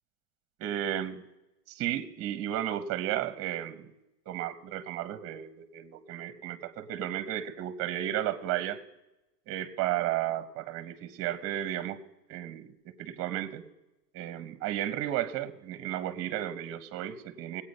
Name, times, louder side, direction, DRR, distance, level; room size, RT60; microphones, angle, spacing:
voice 1, 0.6-1.2 1.7-3.9 4.3-8.8 9.5-12.0 12.3-13.6 14.1-17.6, right 12 dB, 30° right, 13 dB, 0.9 m, -33 dB
20.0 x 8.6 x 5.4 m, 0.99 s
supercardioid pair, 150°, 47 cm